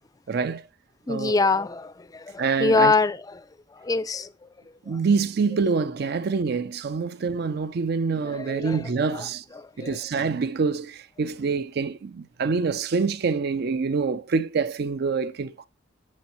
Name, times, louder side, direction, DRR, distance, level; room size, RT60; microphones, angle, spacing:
voice 1, 0.3-0.6 1.1-1.5 2.4-2.9 4.9-9.4 9.8-15.7, right 5 dB, 55° right, 0.4 m, -26 dB
voice 2, 1.1-3.4 3.7-4.5 4.9-5.0 8.3-10.0, left 3 dB, 20° left, 0.4 m, -25 dB
15.0 x 5.3 x 3.0 m
head